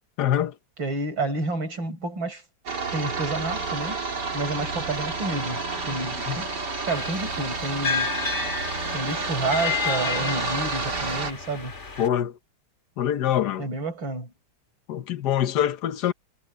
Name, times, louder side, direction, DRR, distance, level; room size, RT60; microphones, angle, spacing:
voice 1, 0.2-0.5 6.3-6.4 12.0-12.3 13.0-13.6 14.9-16.1, left 10 dB, 60° left, 1.4 m, -24 dB
voice 2, 0.8-2.4 2.9-4.0 4.3-6.5 6.9-8.1 8.9-11.7 13.6-14.3, right 2 dB, 75° right, 6.3 m, -30 dB
sound 1, 2.7-11.3, right 3 dB, 55° right, 3.8 m, -30 dB
sound 2, 6.9-12.1, left 6 dB, 35° left, 2.5 m, -31 dB
omnidirectional pair, 2.1 m